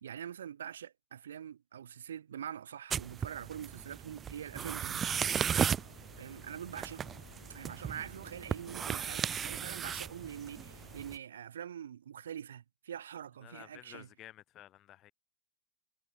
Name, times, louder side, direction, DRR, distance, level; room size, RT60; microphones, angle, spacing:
voice 1, 0.0-5.1 6.2-7.1 7.5-14.1, right 9 dB, 65° right, 1.4 m, -44 dB
sound 1, 2.9-11.2, right 8 dB, 25° right, 1.0 m, -36 dB
sound 2, 5.1-11.1, left 7 dB, 70° left, 2.1 m, -57 dB
voice 2, 13.4-15.1, left 14 dB, 35° left, 5.5 m, -53 dB
figure-of-eight pair, 90°, 0 cm